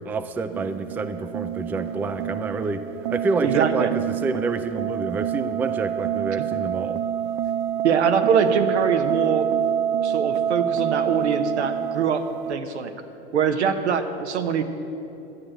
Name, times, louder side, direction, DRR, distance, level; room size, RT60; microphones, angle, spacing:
voice 1, 0.0-7.0, right 3 dB, 5° right, 10 dB, 0.3 m, -28 dB
sound 1, 0.5-12.5, right 10 dB, 50° right, 0.6 m, -27 dB
voice 2, 3.4-3.9 7.8-9.5 10.0-12.2 12.5-12.9 13.3-14.6, right 6 dB, 80° right, 7 dB, 1.1 m, -23 dB
12.0 x 8.6 x 8.0 m, 2.9 s
hypercardioid pair, 100°, 33 cm